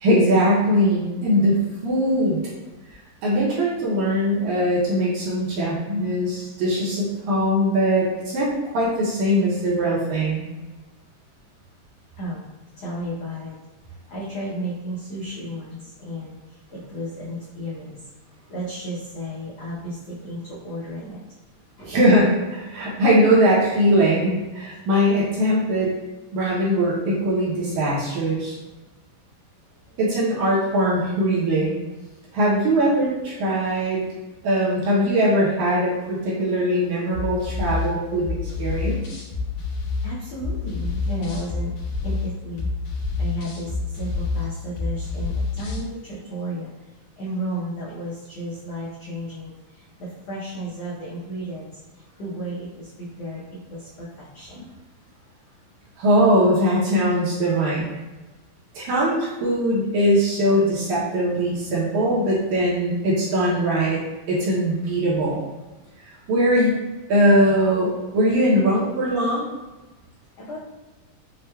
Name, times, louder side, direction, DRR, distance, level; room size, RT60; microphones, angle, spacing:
voice 1, 0.0-2.5 2.9-10.4 21.9-25.9 26.3-28.5 30.0-31.8 32.3-34.1 34.4-39.0 56.0-57.9 58.7-64.0 64.3-65.4 66.3-66.8 67.1-69.5, equal, 75° right, -6 dB, 1.9 m, -21 dB
voice 2, 12.2-13.6 14.1-18.1 18.5-21.2 21.8-22.2 29.6-30.2 32.9-33.0 38.7-39.0 40.0-41.7 42.0-42.7 43.2-54.7 70.4-70.6, equal, 85° left, -8 dB, 1.4 m, -34 dB
sound 1, 37.1-45.9, left 4 dB, 70° left, 2.3 m, -28 dB
6.3 x 2.1 x 2.2 m, 1.1 s
omnidirectional pair, 3.9 m